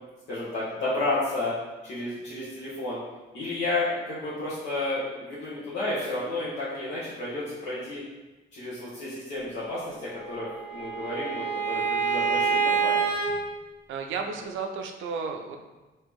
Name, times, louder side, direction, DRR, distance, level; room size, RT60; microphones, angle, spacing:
voice 1, 0.3-1.5 1.8-3.0 3.3-8.0 8.5-13.1, left 2 dB, 70° left, -10 dB, 1.1 m, -31 dB
Bowed string instrument, 10.2-13.3, right 5 dB, 5° right, 0.9 m, -27 dB
voice 2, 13.9-15.6, right 5 dB, 75° right, 4 dB, 0.5 m, -33 dB
3.1 x 2.8 x 3.5 m, 1.1 s
cardioid pair, 90°, 20 cm